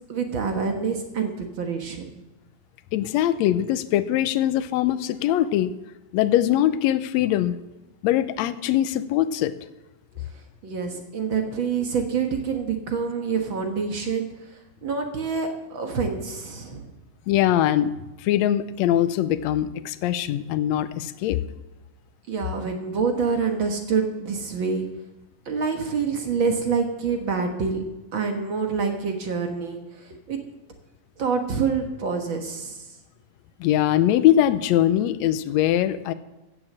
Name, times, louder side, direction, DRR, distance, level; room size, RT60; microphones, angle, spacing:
voice 1, 0.1-2.1 10.6-14.3 14.8-16.9 22.3-24.9 25.4-27.8 28.1-30.4 31.2-32.9, right 5 dB, 50° right, 4 dB, 1.6 m, -26 dB
voice 2, 2.9-5.7 6.1-7.6 8.0-9.5 17.3-17.9 18.2-21.4 33.6-36.1, left 12 dB, 80° left, 12 dB, 1.7 m, -22 dB
16.0 x 7.0 x 7.3 m, 1.0 s
omnidirectional pair, 3.6 m